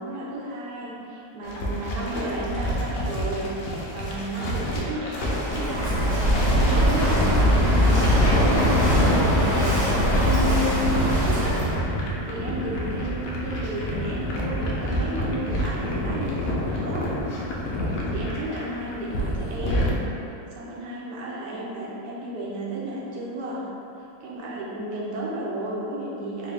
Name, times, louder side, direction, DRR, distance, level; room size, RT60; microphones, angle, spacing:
voice 1, 0.0-3.5 3.9-6.1 6.5-8.1 8.8-11.7 12.3-17.0 18.1-20.0 20.5-23.7 24.0-26.5, right 1 dB, 75° right, -4 dB, 1.3 m, -33 dB
sound 1, 1.4-19.9, equal, 80° left, 1.3 m, -26 dB
Walk footsteps / Wind / Waves surf, 5.1-11.7, equal, 30° right, 0.4 m, -22 dB
3.9 x 2.7 x 3.3 m, 2.8 s
omnidirectional pair, 1.9 m